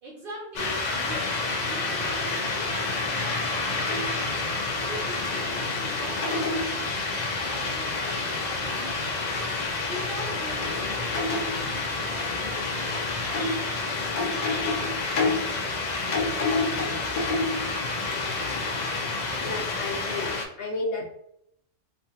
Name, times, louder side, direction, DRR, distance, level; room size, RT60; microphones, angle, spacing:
voice 1, 0.0-4.4 4.7-9.0 9.9-13.3, right 1 dB, 55° right, -2 dB, 0.6 m, -42 dB
sound 1, 0.5-20.4, left 3 dB, 85° left, 0.3 m, -28 dB
voice 2, 19.4-21.1, left 2 dB, 60° left, -2 dB, 0.7 m, -32 dB
3.0 x 2.2 x 2.7 m, 0.73 s
omnidirectional pair, 1.3 m